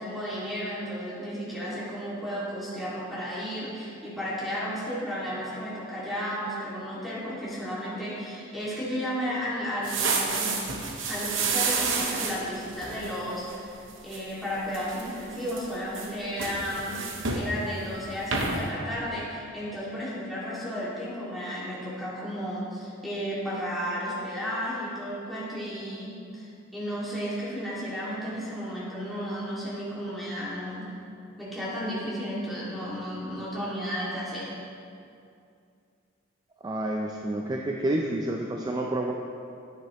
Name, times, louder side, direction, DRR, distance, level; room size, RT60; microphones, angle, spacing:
voice 1, 0.0-10.6 11.1-30.9 31.4-34.5, equal, ahead, -9 dB, 2.3 m, -33 dB
sound 1, 9.8-13.6 13.9-14.2 14.7-15.7 15.9-17.5 17.9-18.1 18.3-18.7, right 4 dB, 70° right, 0.9 m, -30 dB
voice 2, 36.6-39.1, right 1 dB, 20° right, 1 dB, 0.4 m, -29 dB
10.0 x 8.7 x 3.1 m, 2.5 s
head